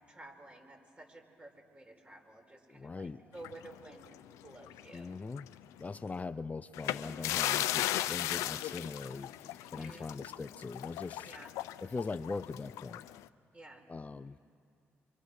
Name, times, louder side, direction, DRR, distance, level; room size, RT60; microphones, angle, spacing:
voice 1, 0.1-4.2 4.4-5.1 9.6-10.1 11.2-11.5 13.5-13.8, right 2 dB, 25° right, 3 dB, 4.6 m, -52 dB
voice 2, 2.7-3.2 4.9-5.5 5.8-11.3 11.8-13.1 13.9-14.4, left 4 dB, 30° left, 11 dB, 0.6 m, -41 dB
sound 1, 3.4-5.0 5.3-5.5 6.7-13.2, left 14 dB, 90° left, 0.5 m, -36 dB
25.5 x 25.0 x 6.3 m, 2.5 s
supercardioid pair, 65°, 5 cm